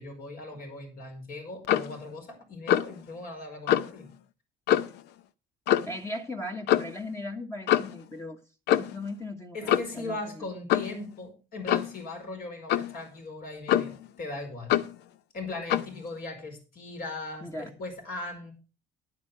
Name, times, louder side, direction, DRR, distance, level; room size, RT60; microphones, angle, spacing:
voice 1, 0.0-4.1 9.5-14.8 15.3-18.5, left 2 dB, 60° left, 4 dB, 4.9 m, -39 dB
Clock, 1.6-2.0 2.7-3.0 3.7-3.9 4.7-5.0 5.7-6.0 6.7-6.9 7.7-8.0 8.7-9.0 9.7-10.0 10.7-11.0 11.7-12.0 12.7-13.0 13.7-14.1 14.7-15.0 15.7-15.9, left 11 dB, 85° left, 0.7 m, -25 dB
voice 2, 5.8-8.4 8.7-10.4 17.4-17.7, left 1 dB, 15° left, 4 dB, 1.2 m, -38 dB
10.5 x 9.3 x 4.9 m, 0.33 s
cardioid pair, 110°, 17 cm